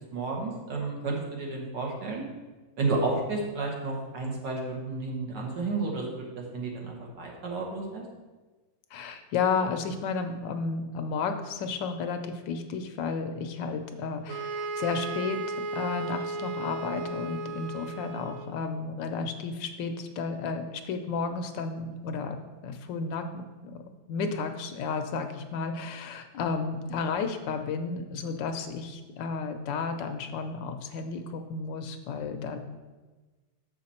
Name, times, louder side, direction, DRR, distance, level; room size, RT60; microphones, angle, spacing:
voice 1, 0.1-2.2 2.8-8.0, right 3 dB, 65° right, -1 dB, 1.9 m, -31 dB
voice 2, 8.9-23.8 24.1-32.6, left 5 dB, 75° left, 7 dB, 1.2 m, -32 dB
sound 1, 14.3-18.7, right 3 dB, 90° right, 1.5 m, -35 dB
7.0 x 5.8 x 4.2 m, 1.3 s
omnidirectional pair, 2.1 m